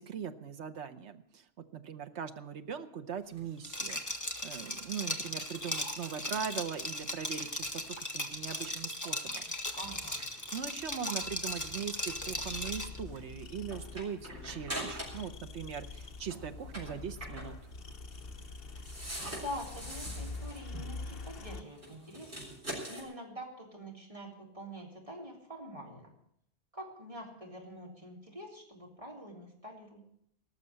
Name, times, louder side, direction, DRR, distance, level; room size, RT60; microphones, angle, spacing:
voice 1, 0.0-1.5 1.7-9.4 10.5-17.6, right 7 dB, 85° right, 9 dB, 1.3 m, -40 dB
sound 1, 3.2-15.4 15.6-23.0, right 1 dB, 50° right, 5.5 m, -46 dB
Liquid, 3.6-13.0, left 1 dB, 15° left, 1.3 m, -37 dB
voice 2, 9.8-10.2 19.3-22.4 22.9-26.1 26.7-30.1, equal, 30° right, -1 dB, 3.6 m, -45 dB
sound 2, 12.0-21.6, left 3 dB, 60° left, 1.2 m, -45 dB
18.5 x 6.7 x 9.7 m, 0.71 s
omnidirectional pair, 1.1 m